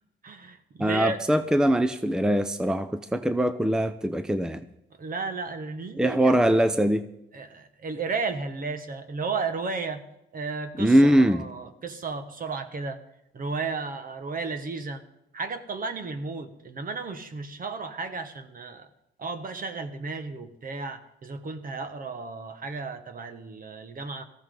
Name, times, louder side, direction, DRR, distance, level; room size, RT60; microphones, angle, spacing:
voice 1, 0.2-1.2 5.0-6.3 7.3-10.0 10.3-13.0 13.3-15.0 15.3-18.9 19.2-24.2, right 4 dB, 45° right, 8 dB, 1.6 m, -33 dB
voice 2, 0.8-4.6 6.0-7.1 10.8-11.5, equal, 5° right, 10 dB, 0.7 m, -22 dB
18.0 x 14.5 x 3.9 m, 0.84 s
cardioid pair, 90°, 20 cm